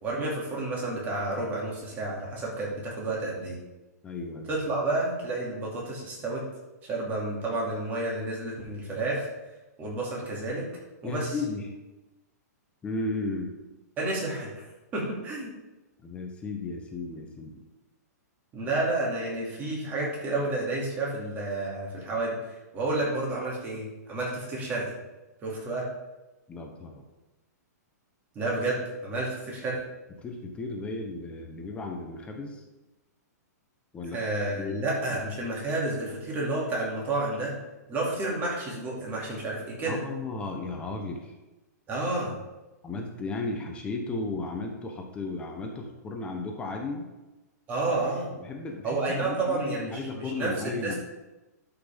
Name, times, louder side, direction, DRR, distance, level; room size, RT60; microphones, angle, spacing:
voice 1, 0.0-3.6 4.5-6.4 6.8-9.3 9.8-10.7 11.0-11.3 14.0-14.5 14.9-15.5 18.5-22.4 22.7-24.9 25.4-25.9 28.3-29.8 34.1-37.6 37.9-40.0 41.9-42.3 47.7-48.3 48.8-50.5 50.8-50.9, right 2 dB, 20° right, -4 dB, 2.6 m, -30 dB
voice 2, 4.0-4.6 11.0-11.7 12.8-13.5 16.0-17.6 26.5-27.0 30.2-32.6 33.9-34.8 35.1-35.2 39.9-41.3 42.8-47.1 48.4-51.0, left 3 dB, 10° left, 2 dB, 0.9 m, -35 dB
12.0 x 5.9 x 3.6 m, 1.1 s
hypercardioid pair, 160°, 9 cm